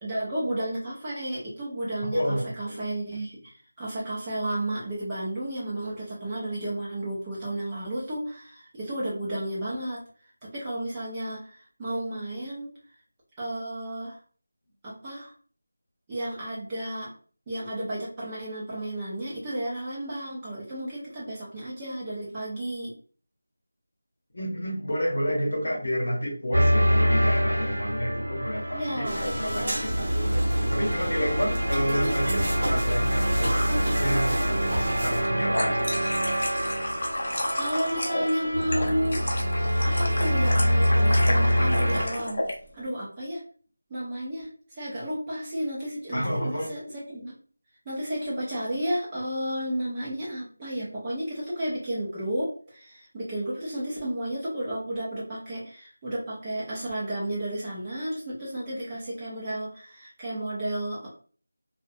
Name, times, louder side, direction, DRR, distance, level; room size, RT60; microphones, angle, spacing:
voice 1, 0.0-10.0 10.4-12.7 13.4-14.2 14.8-15.3 16.1-17.1 17.5-22.9 28.7-29.2 37.5-39.2 39.8-42.4 42.7-43.4 43.9-47.3 47.9-61.1, right 1 dB, 10° right, -7 dB, 0.4 m, -32 dB
voice 2, 2.0-2.8 24.3-35.9 46.1-46.7, equal, 60° left, -1 dB, 1.0 m, -30 dB
sound 1, 26.5-42.1, equal, 70° right, 0.7 m, -25 dB
sound 2, 29.0-35.2, right 1 dB, 35° right, 0.8 m, -31 dB
sound 3, 35.1-42.6, left 1 dB, 40° left, 0.5 m, -32 dB
2.6 x 2.0 x 2.6 m, 0.42 s
figure-of-eight pair, 175°, 0 cm